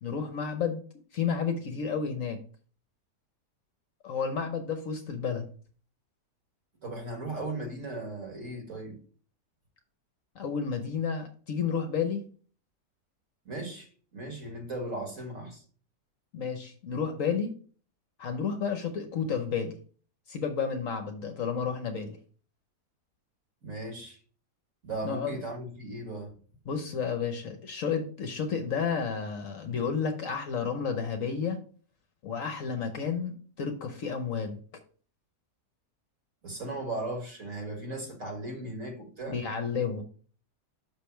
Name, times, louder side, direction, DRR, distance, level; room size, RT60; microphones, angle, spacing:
voice 1, 0.0-0.8 1.1-2.4 4.0-5.5 10.3-12.2 16.3-17.5 18.2-19.8 20.3-22.2 25.0-25.4 26.7-31.6 32.2-34.6 39.3-40.0, left 6 dB, 60° left, 1.1 m, -31 dB
voice 2, 6.8-9.0 13.5-15.6 23.6-24.2 24.8-26.4 36.4-39.4, right 2 dB, 50° right, 2.0 m, -37 dB
6.2 x 5.2 x 4.4 m
omnidirectional pair, 1.8 m